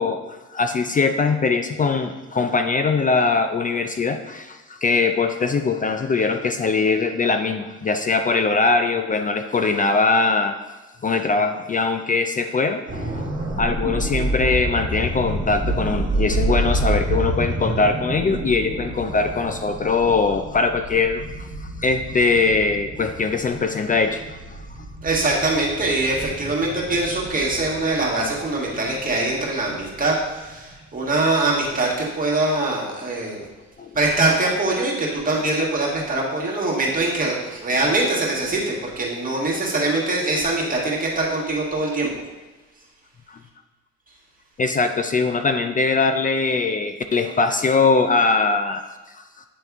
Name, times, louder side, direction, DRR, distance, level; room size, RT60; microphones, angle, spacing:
voice 1, 0.0-10.6 11.0-13.2 13.6-21.2 21.8-24.6 33.8-33.9 43.3-43.4 44.6-48.8, left 4 dB, 30° left, 7 dB, 0.4 m, -21 dB
sound 1, 12.9-30.7 31.1-31.3, right 1 dB, 45° right, 1.9 m, -28 dB
voice 2, 25.0-33.5 33.9-42.1, right 2 dB, 30° right, -3 dB, 1.9 m, -23 dB
9.0 x 3.3 x 3.6 m, 1.2 s
cardioid pair, 90°, 30 cm